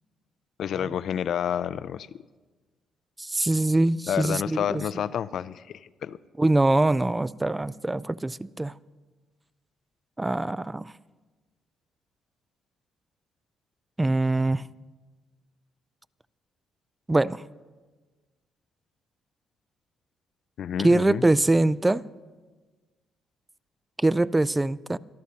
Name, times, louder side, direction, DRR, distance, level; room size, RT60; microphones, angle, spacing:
voice 1, 0.6-2.2 4.1-6.2 20.6-21.2, left 9 dB, 65° left, 0.4 m, -29 dB
voice 2, 3.2-4.8 6.4-8.7 10.2-10.9 14.0-14.6 17.1-17.4 20.8-22.0 24.0-25.0, right 2 dB, 15° right, 0.3 m, -23 dB
26.0 x 12.5 x 2.8 m
cardioid pair, 90°, 0 cm